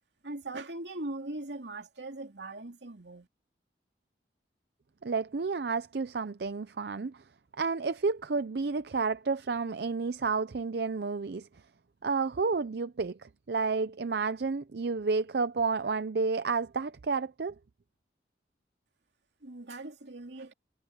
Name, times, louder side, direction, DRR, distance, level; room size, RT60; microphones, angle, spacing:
voice 1, 0.2-3.3 19.4-20.5, right 2 dB, 85° right, 2.7 m, -40 dB
voice 2, 5.0-7.2 7.6-11.5 12.0-17.5, right 4 dB, 70° right, 0.5 m, -31 dB
head